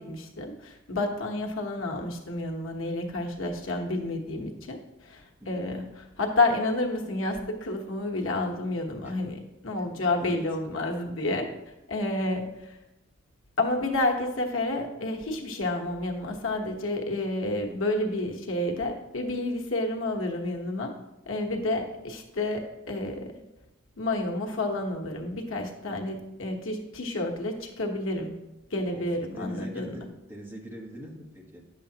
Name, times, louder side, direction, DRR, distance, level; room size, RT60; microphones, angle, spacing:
voice 1, 0.0-11.5 11.9-12.8 13.6-20.9 21.3-23.3 24.0-28.4 28.7-30.0, left 2 dB, 90° left, 2 dB, 1.1 m, -30 dB
voice 2, 5.4-5.7 9.0-9.3 9.9-10.5 21.5-21.6 25.9-26.2 28.9-29.1 29.3-31.6, equal, 10° right, -1 dB, 1.2 m, -43 dB
9.6 x 7.0 x 2.8 m, 0.96 s
head